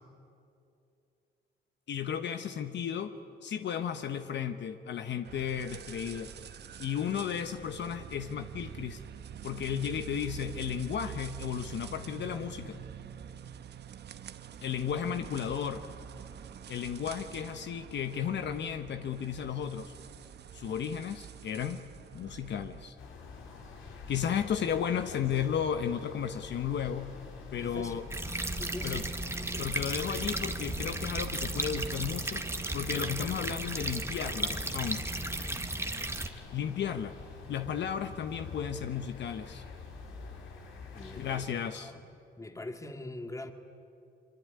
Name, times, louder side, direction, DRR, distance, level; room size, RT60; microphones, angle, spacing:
voice 1, 1.9-3.1 3.4-6.3 6.8-9.0 9.4-12.8 14.6-15.9 16.7-19.9 20.5-21.9 22.1-22.9 24.1-27.2 27.5-28.0 28.8-29.0 29.6-32.4 32.7-35.0 36.5-37.2 37.5-39.6 41.2-41.9, left 8 dB, 60° left, 8 dB, 1.2 m, -34 dB
sound 1, 5.2-22.9, right 8 dB, 60° right, 1.1 m, -46 dB
sound 2, 23.0-41.5, left 4 dB, 80° left, 3.9 m, -46 dB
voice 2, 27.6-28.1 28.6-29.1 29.4-29.7 40.9-42.1 42.4-43.5, left 2 dB, 15° left, 6 dB, 2.3 m, -43 dB
sound 3, 28.1-36.3, right 2 dB, 15° right, 1.6 m, -35 dB
24.0 x 23.5 x 9.7 m, 2.6 s
cardioid pair, 90°, 20 cm